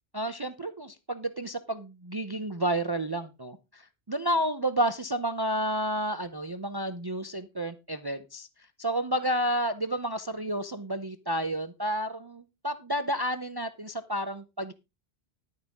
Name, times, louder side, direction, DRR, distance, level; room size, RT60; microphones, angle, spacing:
voice 1, 0.1-3.8 4.1-8.5 8.8-14.7, right 1 dB, 25° right, 11 dB, 0.6 m, -30 dB
11.5 x 9.2 x 3.6 m, 0.25 s
omnidirectional pair, 1.1 m